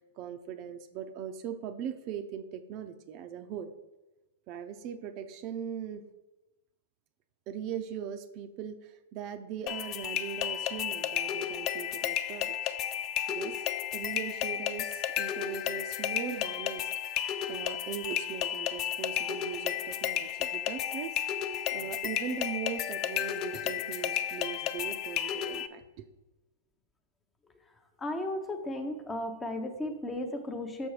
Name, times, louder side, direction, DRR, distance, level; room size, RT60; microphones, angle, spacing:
voice 1, 0.2-3.7 4.5-6.0 7.5-12.8 13.3-13.6 13.9-26.1, right 8 dB, 40° right, 7 dB, 0.5 m, -40 dB
sound 1, 9.7-25.7, left 10 dB, 35° left, 0.4 m, -33 dB
voice 2, 28.0-30.9, left 1 dB, 10° left, 6 dB, 0.7 m, -35 dB
6.2 x 6.1 x 4.8 m, 1.0 s
hypercardioid pair, 140°, 0 cm